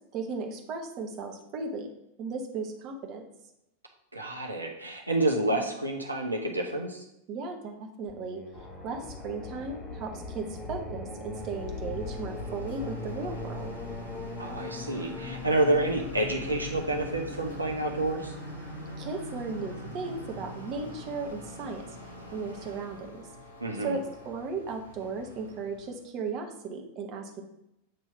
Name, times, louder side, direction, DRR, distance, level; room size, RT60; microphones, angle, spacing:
voice 1, 0.1-1.9 2.2-3.2 7.3-8.4 8.8-13.7 19.0-21.8 22.3-23.2 23.8-27.4, right 4 dB, 35° right, 3 dB, 1.1 m, -36 dB
voice 2, 4.1-7.0 14.4-18.3 23.6-24.0, right 1 dB, 85° right, 1 dB, 0.8 m, -29 dB
Singing, 8.1-22.8, left 1 dB, 10° left, 0.8 m, -42 dB
sound 1, 8.5-24.3, left 4 dB, 45° left, 2.6 m, -44 dB
sound 2, 11.3-26.0, equal, 80° left, 1.2 m, -47 dB
7.6 x 3.0 x 5.6 m, 0.84 s
figure-of-eight pair, 90°, 0 cm